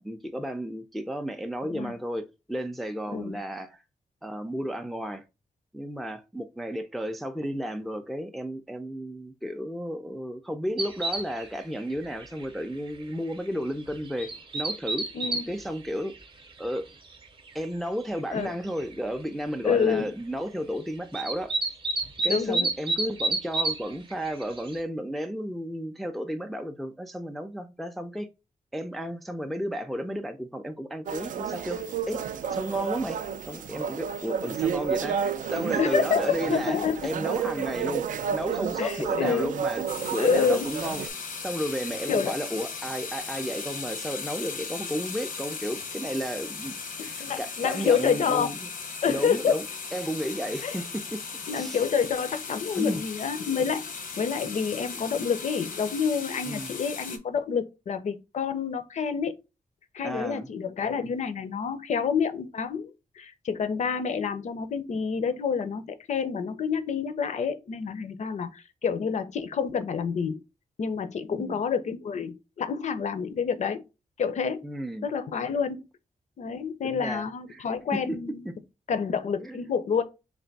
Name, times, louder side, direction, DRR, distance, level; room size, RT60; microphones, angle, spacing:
voice 1, 0.0-3.8 4.2-5.2 5.7-15.1 15.5-16.1 16.6-16.9 17.5-21.5 22.2-28.3 28.7-31.8 32.1-32.2 32.5-33.2 33.5-38.0 38.3-39.8 40.1-41.1 41.4-48.7 49.1-49.6 49.9-51.2 51.5-51.8 52.8-53.0 56.4-56.7 60.0-60.5 71.3-71.6 74.6-75.1 76.8-77.3 77.5-77.6 78.1-78.2 78.4-78.5 79.4-79.6, equal, ahead, 0.3 m, -33 dB
voice 2, 1.6-1.9 3.1-3.4 15.1-15.4 18.3-18.5 19.6-20.1 22.3-22.7 35.8-37.1 38.8-39.5 40.2-40.7 42.1-42.3 47.0-48.5 49.0-49.5 50.6-50.8 51.5-59.4 59.9-70.4 70.8-73.8 74.2-74.6 75.0-75.9 76.4-78.5 78.9-80.0, left 6 dB, 60° left, 0.5 m, -28 dB
sound 1, 10.8-11.5 11.8-11.9 12.2-12.4 12.9-13.0 13.9-15.5 16.1-16.2 17.5-17.6 18.1-18.2 18.4-18.8 21.1-23.8 24.1-24.8, right 2 dB, 40° right, 0.7 m, -29 dB
sound 2, 31.1-41.1, right 7 dB, 75° right, 0.4 m, -31 dB
sound 3, 39.9-57.2, left 5 dB, 85° left, 0.8 m, -37 dB
3.3 x 2.6 x 3.9 m
wide cardioid pair, 150°, 14 cm